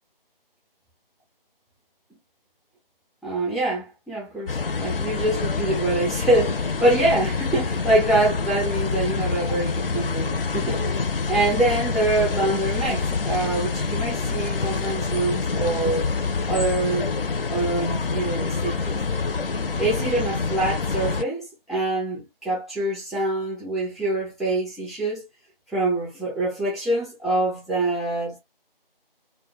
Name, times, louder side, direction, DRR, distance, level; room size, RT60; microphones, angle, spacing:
voice 1, 3.2-11.0 11.3-16.1 16.5-17.1 17.5-19.0 19.8-25.3 25.7-28.4, right 2 dB, ahead, 0.5 m, -25 dB
sound 1, 4.5-21.2, left 4 dB, 70° left, 0.5 m, -26 dB
2.1 x 2.0 x 3.2 m
figure-of-eight pair, 165°, 29 cm